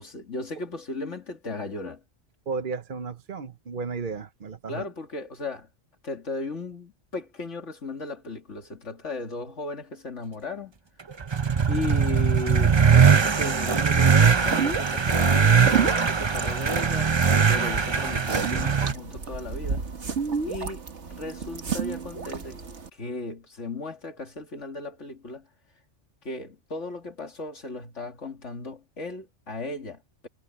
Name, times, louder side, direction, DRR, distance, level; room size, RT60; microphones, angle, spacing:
voice 1, 0.0-2.0 4.7-5.7 6.0-10.7 11.7-17.1 17.5-19.9 20.5-20.8 21.1-22.6 22.9-25.5 26.2-30.3, left 2 dB, 75° left, 2.7 m, -36 dB
voice 2, 2.5-4.9, right 5 dB, 45° right, 1.0 m, -33 dB
sound 1, 11.1-18.9, right 6 dB, 30° right, 0.5 m, -21 dB
sound 2, 14.3-22.9, right 6 dB, 70° right, 1.9 m, -32 dB
omnidirectional pair, 1.2 m